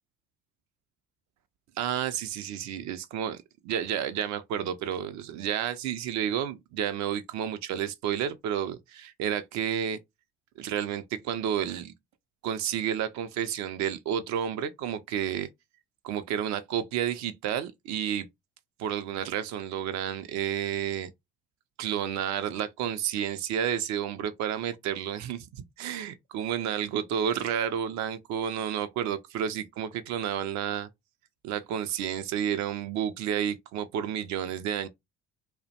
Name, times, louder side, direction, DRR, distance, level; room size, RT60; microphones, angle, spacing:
voice 1, 1.8-10.0 10.6-11.9 12.4-15.5 16.0-18.3 18.8-21.1 21.8-30.9 31.4-34.9, right 9 dB, 55° right, 0.4 m, -31 dB
2.4 x 2.1 x 2.7 m
hypercardioid pair, 55°, 35 cm